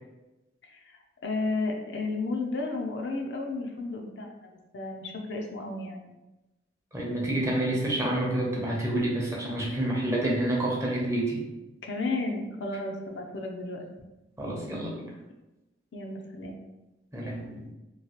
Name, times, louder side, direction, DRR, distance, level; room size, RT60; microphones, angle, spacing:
voice 1, 1.2-6.1 9.1-10.0 11.8-13.9 15.9-16.6, left 3 dB, 80° left, 2 dB, 0.5 m, -33 dB
voice 2, 6.9-11.4 14.4-15.1 17.1-17.7, right 1 dB, 15° right, -3 dB, 0.7 m, -28 dB
3.1 x 2.7 x 2.9 m, 1.0 s
head